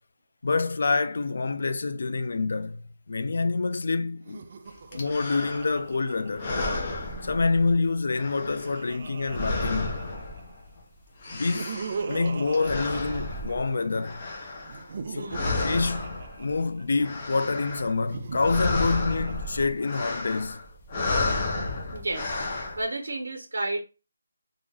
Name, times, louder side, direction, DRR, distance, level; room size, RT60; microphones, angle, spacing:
voice 1, 0.4-4.5 4.9-6.5 7.2-10.1 11.3-11.7 12.1-14.2 15.1-20.6, left 3 dB, 50° left, 0.3 m, -27 dB
Laughter, 4.2-6.9 8.0-10.6 11.3-14.0 14.6-17.0 17.9-20.0, right 5 dB, 30° right, 0.3 m, -40 dB
sound 1, 4.9-5.9 6.3-7.9 8.1-10.8 11.0-15.0 15.3-16.6 16.9-18.0 18.2-22.8, left 2 dB, 20° left, 0.7 m, -32 dB
voice 2, 15.1-15.5 21.9-23.8, right 2 dB, 60° right, 1.2 m, -32 dB
3.3 x 2.5 x 3.5 m
figure-of-eight pair, 175°, 0 cm